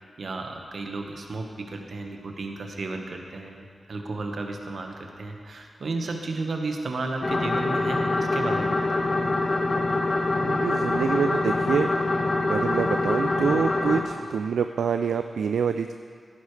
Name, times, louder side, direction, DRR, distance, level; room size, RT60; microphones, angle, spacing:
voice 1, 0.2-9.1, right 3 dB, 70° right, 3 dB, 1.3 m, -33 dB
sound 1, 7.2-14.0, left 2 dB, 50° left, 1.3 m, -25 dB
voice 2, 10.4-11.9 12.5-15.9, right 6 dB, 85° right, 8 dB, 0.3 m, -26 dB
14.5 x 11.5 x 3.3 m, 2.1 s
cardioid pair, 40°, 0 cm